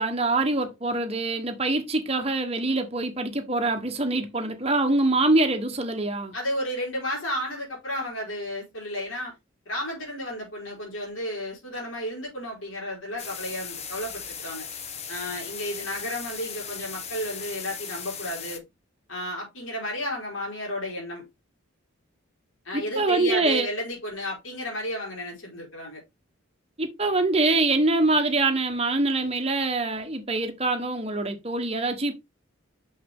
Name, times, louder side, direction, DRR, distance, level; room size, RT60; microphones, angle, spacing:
voice 1, 0.0-6.3 22.7-23.7 26.8-32.2, right 2 dB, 30° right, 1.2 m, -24 dB
voice 2, 6.3-9.3 9.7-14.7 15.1-18.6 19.1-21.2 22.6-26.0, left 1 dB, 75° left, 4.5 m, -32 dB
sound 1, 13.2-18.6, left 7 dB, 30° left, 1.0 m, -37 dB
6.5 x 5.6 x 3.6 m
head